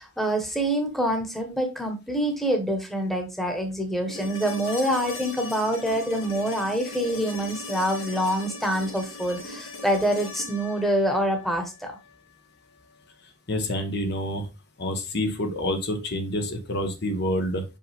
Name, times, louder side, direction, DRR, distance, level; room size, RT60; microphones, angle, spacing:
voice 1, 0.0-12.0, right 1 dB, ahead, 1.2 m, -26 dB
sound 1, 4.1-12.2 14.3-14.4, left 2 dB, 80° left, 1.9 m, -39 dB
voice 2, 13.5-14.5 14.8-17.6, left 1 dB, 55° left, 1.2 m, -27 dB
5.5 x 5.4 x 3.5 m
head